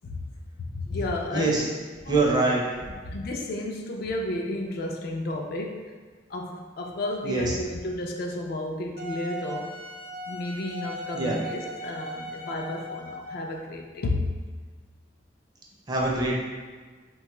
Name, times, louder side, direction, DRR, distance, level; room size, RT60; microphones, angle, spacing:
voice 1, 0.6-1.6 2.0-2.3 3.0-5.8 6.3-9.7 10.3-14.3, left 2 dB, 55° left, 1 dB, 0.3 m, -32 dB
voice 2, 1.3-1.6 2.1-3.0 7.2-7.6 11.1-11.4 15.9-16.4, right 2 dB, 20° right, -3 dB, 0.4 m, -24 dB
Wind instrument woodwind instrument, 9.0-13.5, equal, 75° right, 0.7 m, -38 dB
3.1 x 2.2 x 2.9 m, 1.5 s
head